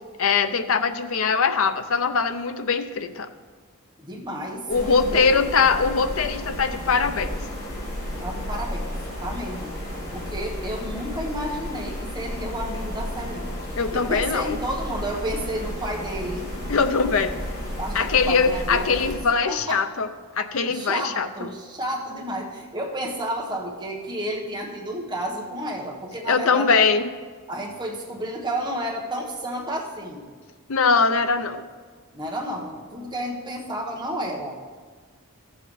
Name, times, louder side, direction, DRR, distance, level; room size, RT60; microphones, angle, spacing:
voice 1, 0.2-3.3 4.7-7.4 13.7-14.6 16.7-17.4 17.9-20.1 20.4-21.5 26.3-27.0 30.7-31.6, left 5 dB, 70° left, 9 dB, 0.6 m, -22 dB
voice 2, 4.0-5.8 8.2-8.9 9.2-9.7 10.1-16.5 17.8-19.1 19.4-19.9 20.7-26.8 27.5-30.3 32.1-34.6, right 1 dB, 20° right, -1 dB, 1.2 m, -31 dB
sound 1, 4.7-19.2, equal, 45° left, 3.2 m, -33 dB
14.5 x 7.3 x 3.3 m, 1.5 s
head